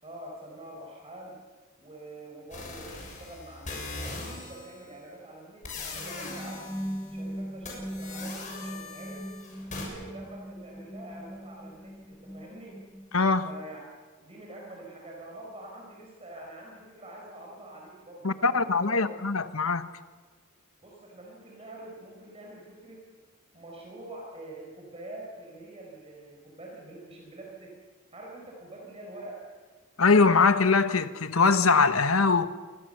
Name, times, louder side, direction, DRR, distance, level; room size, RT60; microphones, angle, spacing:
voice 1, 0.0-1.4 1.8-6.7 7.1-9.3 9.7-12.9 13.4-13.8 14.2-19.1 20.8-23.1 23.5-27.8 28.1-29.5, right 1 dB, 30° right, 4.7 m, -45 dB
sound 1, 2.5-4.8 5.6-7.2 7.6-9.9, left 3 dB, 35° left, 7.2 m, -40 dB
sound 2, 5.8-13.6, equal, 5° left, 0.8 m, -40 dB
voice 2, 13.1-13.5 18.2-19.9 30.0-32.5, left 4 dB, 90° left, 1.2 m, -22 dB
27.5 x 21.0 x 6.8 m
head